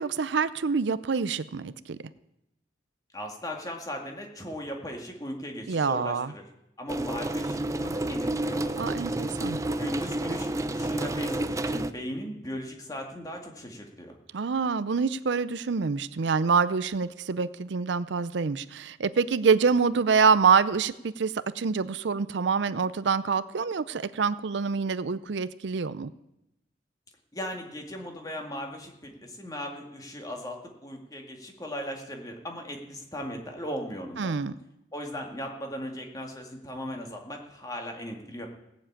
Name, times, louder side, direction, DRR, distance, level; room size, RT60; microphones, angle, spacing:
voice 1, 0.0-2.0 5.7-6.3 8.8-9.6 14.3-26.1 34.2-34.5, right 5 dB, 75° right, 16 dB, 0.5 m, -26 dB
voice 2, 3.1-6.5 6.8-8.8 9.8-14.1 27.3-34.3 34.9-38.5, equal, 20° left, 2 dB, 2.1 m, -37 dB
sound 1, 6.9-11.9, right 1 dB, 15° right, 0.5 m, -30 dB
17.0 x 7.4 x 8.7 m, 0.87 s
head